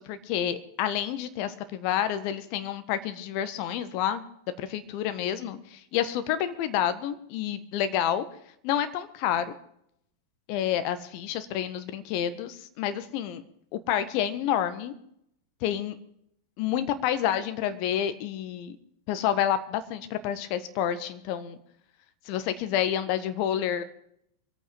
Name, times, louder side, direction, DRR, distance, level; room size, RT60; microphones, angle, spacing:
voice 1, 0.0-4.2 4.6-8.2 8.6-9.5 10.5-13.4 13.7-14.9 15.6-16.0 16.6-18.8 19.1-21.6 22.2-23.8, left 10 dB, 45° left, 11 dB, 1.4 m, -29 dB
24.0 x 9.0 x 5.3 m, 0.74 s
figure-of-eight pair, 90°, 0 cm